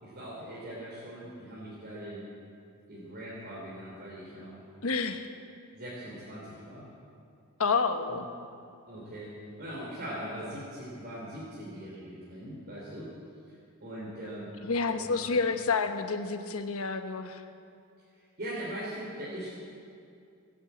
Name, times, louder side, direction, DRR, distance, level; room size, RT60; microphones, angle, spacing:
voice 1, 0.0-2.3 2.9-4.6 5.7-6.8 8.1-8.2 8.9-9.3 9.6-13.1 13.5-14.5 14.9-15.4 18.0-19.5, right 1 dB, 45° right, -7 dB, 3.2 m, -41 dB
voice 2, 4.8-5.3 7.6-8.3 14.6-17.4, left 4 dB, 70° left, 7 dB, 1.0 m, -29 dB
18.0 x 8.8 x 8.3 m, 2.5 s
head